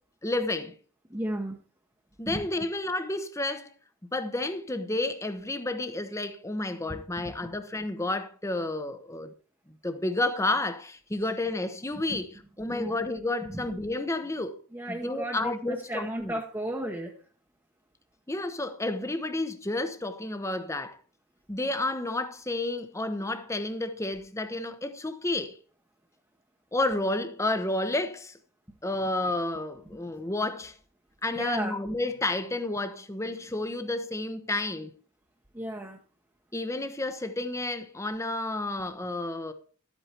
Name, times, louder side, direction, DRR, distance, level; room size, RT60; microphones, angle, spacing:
voice 1, 0.2-0.7 2.2-3.7 4.1-9.3 9.7-14.6 14.9-16.4 18.3-21.0 21.5-25.6 26.7-28.4 28.8-30.8 31.2-35.0 36.5-39.5, left 2 dB, 15° left, 0.9 m, -31 dB
voice 2, 1.1-1.6 2.3-2.5 6.9-7.3 12.1-12.2 12.7-12.9 13.4-13.7 14.7-17.1 31.3-31.7 35.5-36.0, right 1 dB, 10° right, 1.0 m, -34 dB
12.0 x 8.2 x 4.4 m
head